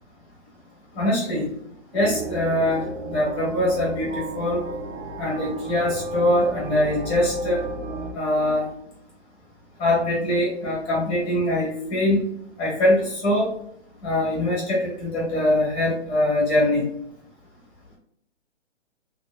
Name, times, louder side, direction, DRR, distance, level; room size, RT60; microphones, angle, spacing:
voice 1, 0.9-1.5 1.9-4.6 5.2-7.7 8.1-8.7 9.8-12.2 12.6-13.5 14.0-16.9, left 1 dB, 15° left, -6 dB, 1.4 m, -23 dB
sound 1, 1.9-8.1, right 2 dB, 90° right, 0.8 m, -35 dB
3.3 x 2.8 x 2.2 m, 0.70 s
hypercardioid pair, 145°, 36 cm